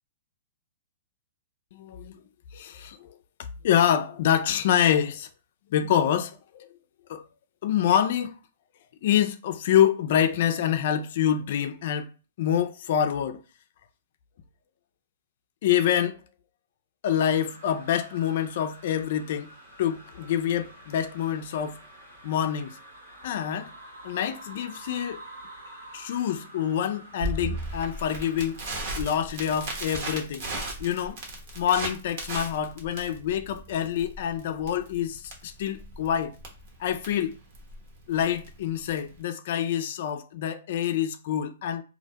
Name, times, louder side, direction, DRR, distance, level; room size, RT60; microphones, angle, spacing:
voice 1, 1.7-2.2 2.5-3.2 3.6-5.3 5.7-6.7 7.1-7.2 7.6-8.3 9.0-12.1 12.4-13.4 15.6-16.2 17.0-19.5 19.8-21.8 22.2-22.8 23.2-23.7 24.0-25.2 25.9-28.6 29.0-30.5 30.8-31.2 31.6-36.4 36.8-37.4 38.1-41.8, left 9 dB, 60° left, 0.4 m, -26 dB
sound 1, 17.2-29.1, right 1 dB, 80° right, 1.4 m, -48 dB
Crackle, 27.2-39.2, right 2 dB, 55° right, 0.9 m, -36 dB
2.5 x 2.1 x 2.8 m
hypercardioid pair, 135°, 0 cm